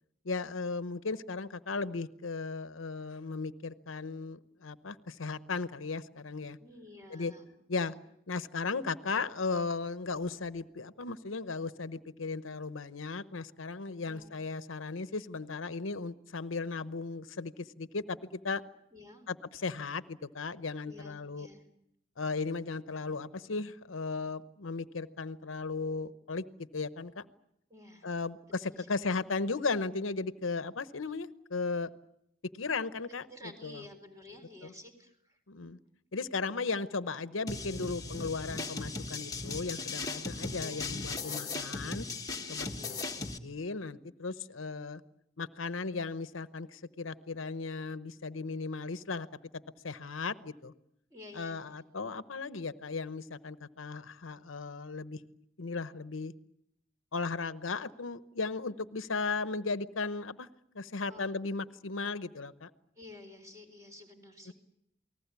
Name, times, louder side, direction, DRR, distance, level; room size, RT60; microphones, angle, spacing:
voice 1, 0.2-6.6 7.1-7.3 7.7-7.9 8.3-18.2 18.4-18.6 19.3-21.5 22.2-26.4 26.7-27.2 28.0-31.9 32.5-33.3 33.6-33.8 34.6-34.7 35.5-35.8 36.1-42.0 42.5-43.0 43.4-45.0 45.4-49.3 49.8-50.7 51.3-55.2 55.6-56.3 57.1-60.5 60.7-62.7 64.5-64.6, left 4 dB, 85° left, 13 dB, 0.9 m, -36 dB
voice 2, 6.6-7.4 7.8-8.0 14.1-14.3 18.9-19.2 20.9-21.6 27.7-28.1 28.7-29.0 33.3-35.4 40.6-41.4 41.8-42.0 42.8-43.1 51.1-51.6 61.1-61.3 63.0-64.5, left 2 dB, 15° right, 5 dB, 4.1 m, -51 dB
sound 1, 37.5-43.4, left 3 dB, 20° left, 1.4 m, -38 dB
29.0 x 19.5 x 8.3 m, 0.77 s
head